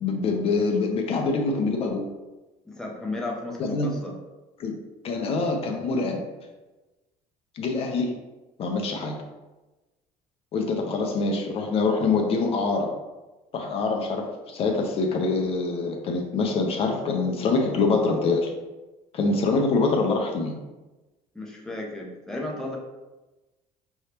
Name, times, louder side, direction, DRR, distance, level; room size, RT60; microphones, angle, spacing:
voice 1, 0.0-2.1 3.7-3.9 4.6-4.8 5.0-6.2 7.6-8.1 8.6-9.1 10.5-12.9 13.5-18.5 19.1-20.6, left 3 dB, 45° left, 2 dB, 0.6 m, -25 dB
voice 2, 2.7-4.2 21.3-22.8, left 2 dB, 5° left, -2 dB, 0.6 m, -34 dB
4.6 x 3.4 x 2.8 m, 1.1 s
cardioid pair, 135°, 14 cm